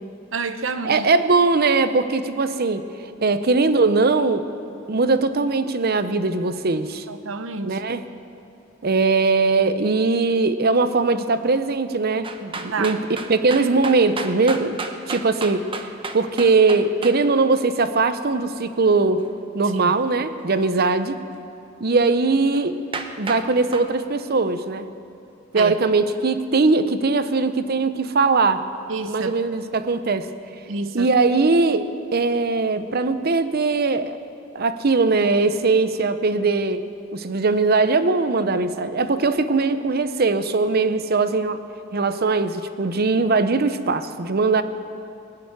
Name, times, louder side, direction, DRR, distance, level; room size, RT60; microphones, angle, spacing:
voice 1, 0.3-1.1 7.1-7.8 12.7-12.9 19.9-20.0 25.5-25.7 28.9-29.3 30.7-31.1, right 4 dB, 85° right, 10 dB, 0.9 m, -28 dB
voice 2, 0.8-2.8 3.2-4.4 4.9-7.0 7.6-8.0 8.8-14.8 15.1-15.7 16.1-19.2 19.5-21.2 21.8-22.8 23.2-24.9 25.5-28.6 29.1-30.3 30.9-34.2 34.5-36.8 37.1-41.6 41.9-44.6, right 3 dB, 50° right, 11 dB, 0.7 m, -20 dB
sound 1, 12.2-17.2 22.5-22.6 22.9-23.4 23.7-23.9, right 3 dB, 25° right, 0.9 m, -31 dB
20.5 x 6.9 x 9.5 m, 2.6 s
head